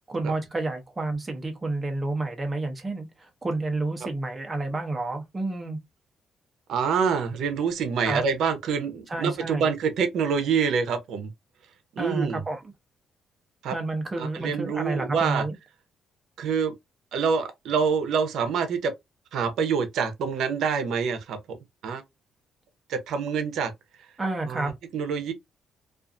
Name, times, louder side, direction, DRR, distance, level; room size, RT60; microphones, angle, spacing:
voice 1, 0.1-5.8 8.0-8.2 9.1-9.7 12.0-12.6 13.7-15.5 24.2-24.7, right 2 dB, 25° right, 0.7 m, -30 dB
voice 2, 6.7-11.3 12.0-12.4 13.6-13.7 14.2-15.4 16.4-16.7 17.1-18.9 19.3-21.6 21.8-22.0 22.9-23.7 24.4-25.3, right 6 dB, 75° right, 0.7 m, -26 dB
2.4 x 2.4 x 2.5 m
cardioid pair, 90°, 0 cm